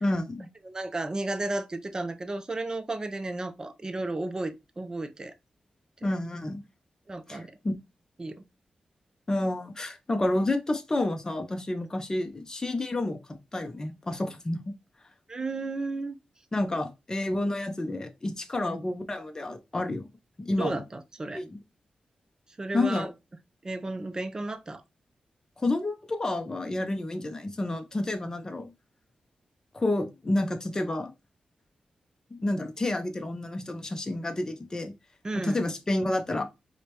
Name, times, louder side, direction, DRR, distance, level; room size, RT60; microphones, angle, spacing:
voice 1, 0.0-0.5 6.0-6.7 7.3-7.7 9.3-13.2 13.5-14.6 16.5-20.1 20.4-20.8 21.3-21.6 22.7-23.1 25.6-28.7 29.7-31.1 32.3-34.9 35.3-36.4, left 2 dB, 25° left, 0.6 m, -29 dB
voice 2, 0.6-5.3 7.1-7.5 8.2-8.3 15.3-16.1 18.6-18.8 20.5-21.4 22.6-23.1 23.6-24.8 35.2-35.6, right 2 dB, 30° right, 0.5 m, -33 dB
4.9 x 2.2 x 2.9 m
cardioid pair, 85°, 2 cm